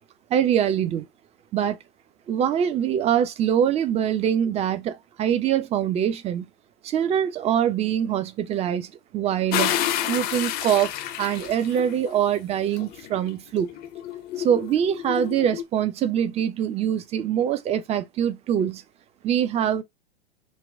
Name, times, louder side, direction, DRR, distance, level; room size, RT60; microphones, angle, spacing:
voice 1, 0.3-1.1 1.5-1.8 2.3-6.5 6.8-9.8 10.1-13.7 14.4-18.8 19.2-19.8, right 9 dB, 20° right, 0.6 m, -24 dB
sound 1, 9.5-12.1 12.8-15.6, left 11 dB, 30° left, 0.6 m, -30 dB
4.1 x 2.2 x 3.7 m
figure-of-eight pair, 100°, 31 cm